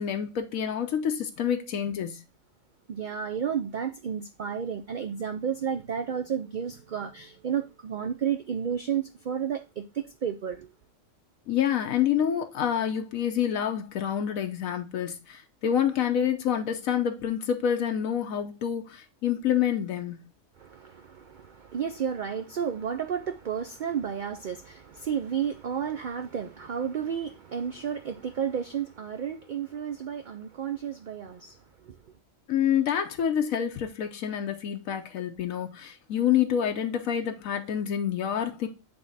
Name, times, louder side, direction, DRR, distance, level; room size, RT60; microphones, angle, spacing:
voice 1, 0.0-2.2 11.5-20.2 32.5-38.7, left 9 dB, 85° left, 1.2 m, -27 dB
voice 2, 2.9-10.7 20.6-32.0, right 8 dB, 65° right, 0.4 m, -32 dB
7.8 x 3.5 x 4.0 m
omnidirectional pair, 1.4 m